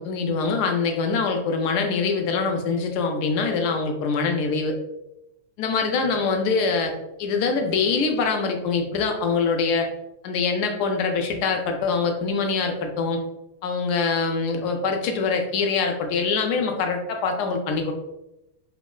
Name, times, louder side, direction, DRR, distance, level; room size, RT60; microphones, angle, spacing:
voice 1, 0.0-4.7 5.6-6.9 7.2-9.9 10.2-13.2 13.6-17.9, left 4 dB, 45° left, 4 dB, 0.4 m, -24 dB
2.9 x 2.1 x 2.2 m, 0.88 s
figure-of-eight pair, 90°, 0 cm